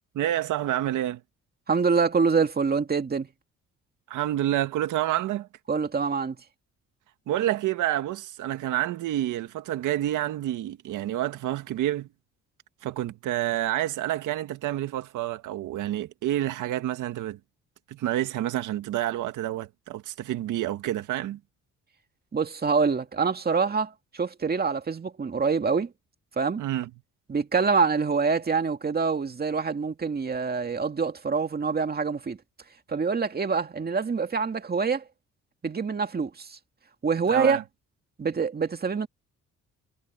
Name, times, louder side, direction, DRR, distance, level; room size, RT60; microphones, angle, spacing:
voice 1, 0.1-1.2 4.1-5.5 7.3-12.1 12.8-17.4 17.9-21.4 26.6-26.9 37.3-37.6, right 13 dB, 85° right, 1.9 m, -28 dB
voice 2, 1.7-3.3 5.7-6.4 22.3-25.9 26.4-26.6 27.3-32.4 32.9-35.0 35.6-36.6 37.0-37.6 38.2-39.1, right 5 dB, 30° right, 2.2 m, -25 dB
cardioid pair, 90°, 30 cm